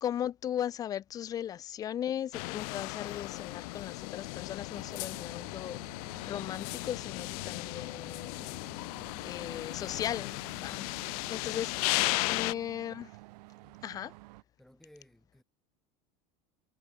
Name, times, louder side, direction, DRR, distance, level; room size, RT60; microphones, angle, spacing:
voice 1, 0.0-5.8 6.3-8.5 9.2-10.9 11.3-11.7 12.3-13.1 13.8-14.1, left 10 dB, 20° left, 0.3 m, -37 dB
sound 1, 2.3-12.5, left 29 dB, 65° left, 0.8 m, -36 dB
sound 2, 4.7-14.4, right 22 dB, 85° right, 2.2 m, -54 dB
voice 2, 14.6-15.4, equal, ahead, 4.2 m, -59 dB
cardioid pair, 170°, 20 cm